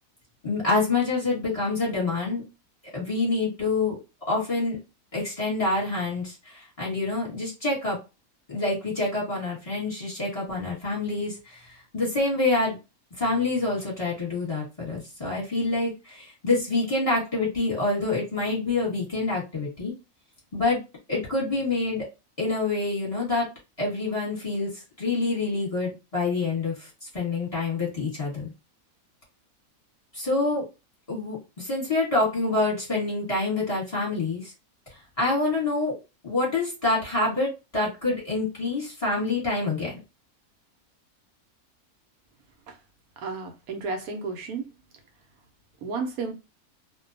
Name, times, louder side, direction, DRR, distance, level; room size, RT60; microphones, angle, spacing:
voice 1, 0.4-2.4 2.9-4.0 4.3-4.8 5.1-8.0 8.5-12.8 13.2-19.9 20.5-20.8 21.1-22.1 22.4-23.5 23.8-24.7 25.0-28.5 30.1-30.7 31.1-34.5 35.2-35.9 36.2-39.9, left 3 dB, 25° left, 1.1 m, -27 dB
voice 2, 43.2-44.7 45.8-46.3, right 4 dB, 80° right, 1.1 m, -32 dB
2.6 x 2.2 x 2.4 m
omnidirectional pair, 1.6 m